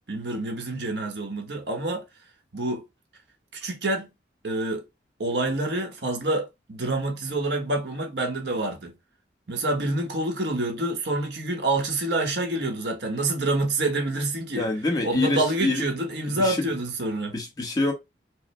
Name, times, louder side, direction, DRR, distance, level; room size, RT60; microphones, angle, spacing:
voice 1, 0.1-2.0 2.5-2.8 3.5-4.1 4.4-4.8 5.2-8.9 9.5-14.7 15.0-17.3, right 2 dB, 75° right, 1.1 m, -27 dB
voice 2, 14.6-15.8 16.2-16.6 17.3-17.9, left 2 dB, 20° left, 1.0 m, -26 dB
4.7 x 2.1 x 3.1 m
head